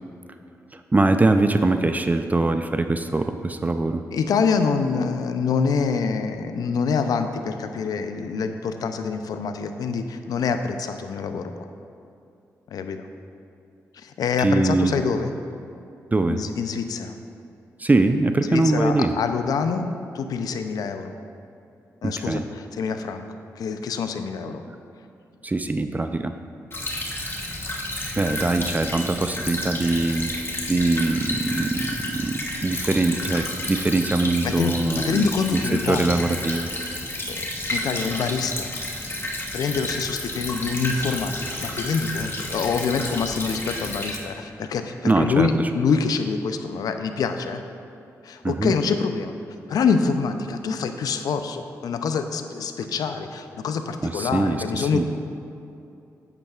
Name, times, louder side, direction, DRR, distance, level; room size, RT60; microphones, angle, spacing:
voice 1, 0.7-4.0 14.4-15.0 16.1-16.4 17.8-19.1 22.0-22.4 25.4-26.3 28.2-35.3 35.9-36.7 45.0-45.7 48.4-48.8 54.0-55.1, right 2 dB, 25° right, 8 dB, 0.4 m, -22 dB
voice 2, 4.1-11.5 12.7-13.0 13.9-15.3 16.3-17.1 18.4-19.9 20.1-21.1 22.0-23.2 23.6-24.6 34.4-36.2 37.3-38.7 39.5-47.6 48.2-49.3 49.7-55.1, left 5 dB, 75° left, 8 dB, 0.5 m, -26 dB
Stream / Trickle dribble, 26.7-44.2, left 1 dB, 35° left, 1.4 m, -31 dB
8.6 x 8.2 x 2.4 m, 2.6 s
supercardioid pair, 50°, 7 cm